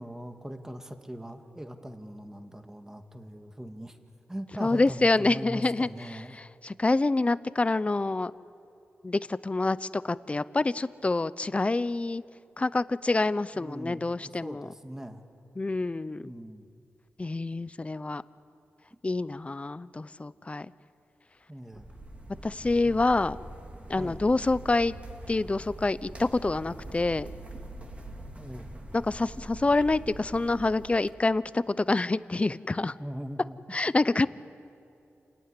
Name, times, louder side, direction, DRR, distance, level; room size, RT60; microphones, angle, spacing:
voice 1, 0.0-4.0 4.3-6.4 13.5-15.2 16.2-16.7 21.5-21.9 22.8-23.0 24.0-24.3 28.3-28.7 33.0-33.8, equal, 10° right, 6 dB, 1.6 m, -41 dB
voice 2, 4.6-5.9 6.3-8.3 9.0-12.2 12.6-14.7 15.6-16.3 17.2-18.2 19.0-20.7 22.4-23.4 23.9-24.9 25.3-27.3 28.9-32.9 33.7-34.3, left 2 dB, 25° left, 16 dB, 0.6 m, -27 dB
sound 1, 21.7-31.1, right 1 dB, 25° right, 2.7 m, -43 dB
29.0 x 15.5 x 9.8 m, 2.8 s
wide cardioid pair, 110°, 5 cm